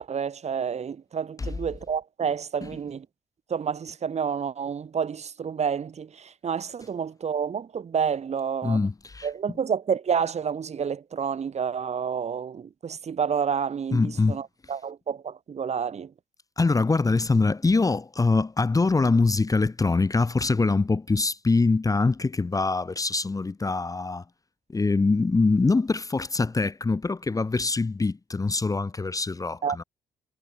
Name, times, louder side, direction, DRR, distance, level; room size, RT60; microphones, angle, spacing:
voice 1, 0.0-3.1 3.5-8.8 9.2-16.1 29.6-29.8, right 7 dB, 55° right, 5.8 m, -29 dB
voice 2, 8.6-9.3 13.9-14.4 16.6-24.2 24.7-29.8, left 3 dB, 25° left, 1.1 m, -24 dB
hypercardioid pair, 45°, 14 cm